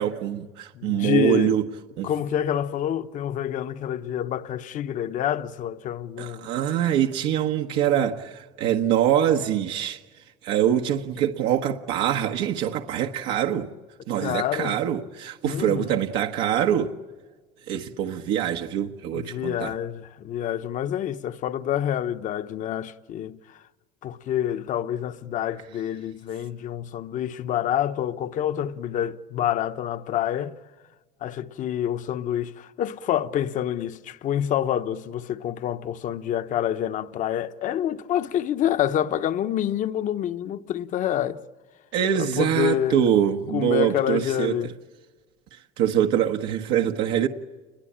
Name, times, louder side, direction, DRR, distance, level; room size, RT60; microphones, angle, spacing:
voice 1, 0.0-1.6 2.0-2.1 6.2-10.0 10.4-13.7 14.1-16.9 17.7-19.7 41.9-44.5 45.8-47.3, right 10 dB, 75° right, 1.4 m, -24 dB
voice 2, 0.7-1.6 2.0-6.5 14.2-14.8 15.4-16.0 19.1-23.6 24.0-30.6 31.2-41.4 42.1-43.0 43.5-44.7, left 10 dB, 45° left, 1.0 m, -27 dB
29.5 x 22.0 x 8.8 m
cardioid pair, 150°, 18 cm